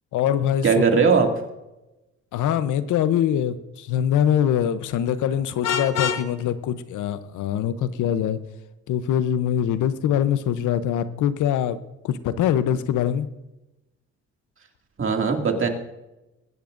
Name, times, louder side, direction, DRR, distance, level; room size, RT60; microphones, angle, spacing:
voice 1, 0.1-0.7 2.3-8.4 8.9-11.8 12.0-13.3, left 10 dB, 80° left, 13 dB, 0.8 m, -23 dB
voice 2, 0.6-1.3 15.0-15.7, right 5 dB, 45° right, 3 dB, 2.3 m, -19 dB
Vehicle horn car horn honking, 5.6-6.3, left 7 dB, 55° left, 1.1 m, -25 dB
22.0 x 10.5 x 2.6 m, 0.96 s
cardioid pair, 90°, 30 cm